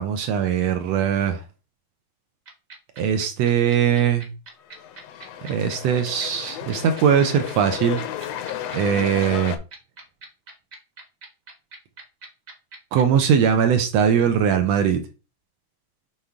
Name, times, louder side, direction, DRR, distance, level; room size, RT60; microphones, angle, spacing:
voice 1, 0.0-1.4 3.0-4.3 5.5-8.0 8.7-9.6 12.9-15.0, right 8 dB, 75° right, 7 dB, 1.6 m, -20 dB
sound 1, 2.5-13.5, right 3 dB, 40° right, 1.5 m, -41 dB
sound 2, 4.6-9.6, left 11 dB, 75° left, 1.7 m, -33 dB
7.7 x 3.5 x 3.5 m, 0.32 s
omnidirectional pair, 3.4 m